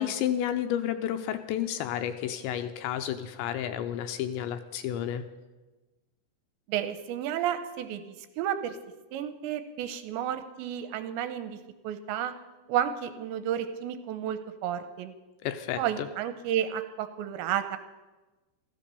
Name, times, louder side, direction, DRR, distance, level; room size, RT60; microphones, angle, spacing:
voice 1, 0.0-5.3 15.4-16.1, left 10 dB, 80° left, 9 dB, 2.8 m, -31 dB
voice 2, 6.7-8.8 9.1-11.6 11.8-12.3 12.7-15.1 15.8-17.8, right 10 dB, 80° right, 10 dB, 2.8 m, -32 dB
14.5 x 13.0 x 6.8 m, 1.2 s
omnidirectional pair, 5.5 m